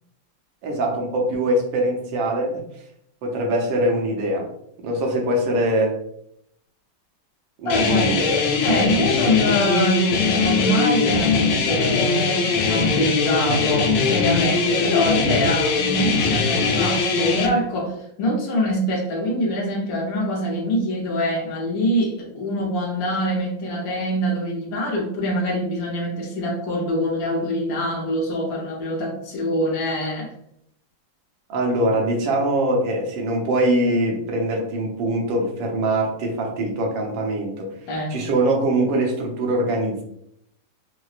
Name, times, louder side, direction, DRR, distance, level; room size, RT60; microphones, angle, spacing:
voice 1, 0.6-2.6 3.2-4.5 4.8-5.9 7.6-8.5 31.5-37.7 38.1-40.0, right 1 dB, 75° right, 1 dB, 1.4 m, -22 dB
voice 2, 7.6-8.2 8.6-30.3 37.9-38.2, equal, 60° left, -3 dB, 1.0 m, -24 dB
sound 1, 7.7-17.5, left 4 dB, 90° left, 1.4 m, -21 dB
4.6 x 2.1 x 2.4 m, 0.73 s
omnidirectional pair, 2.2 m